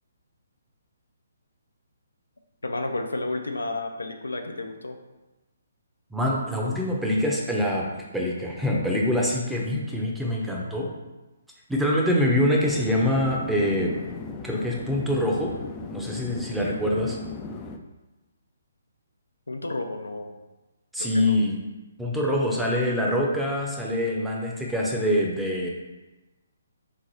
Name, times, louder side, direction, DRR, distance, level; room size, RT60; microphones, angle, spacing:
voice 1, 2.6-5.0 19.5-20.4 21.0-21.4, left 2 dB, 90° left, 4 dB, 0.5 m, -31 dB
voice 2, 6.1-7.8 8.1-10.9 11.7-13.9 14.4-15.5 15.9-17.2 20.9-21.6 22.0-25.7, left 1 dB, 5° right, -3 dB, 0.7 m, -25 dB
sound 1, 12.6-17.8, left 4 dB, 20° left, 0.4 m, -37 dB
3.8 x 3.1 x 4.0 m, 1.1 s
figure-of-eight pair, 140°, 0 cm